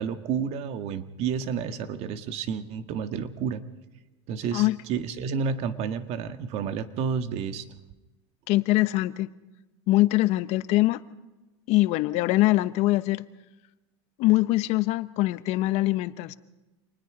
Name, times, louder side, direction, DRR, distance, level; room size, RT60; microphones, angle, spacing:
voice 1, 0.0-3.6 4.3-7.6, right 6 dB, 50° right, 9 dB, 1.7 m, -30 dB
voice 2, 8.5-9.3 9.9-11.0 11.7-13.2 14.2-16.4, left 18 dB, 50° left, 14 dB, 1.0 m, -23 dB
27.0 x 20.0 x 5.0 m, 1.1 s
supercardioid pair, 125°, 14 cm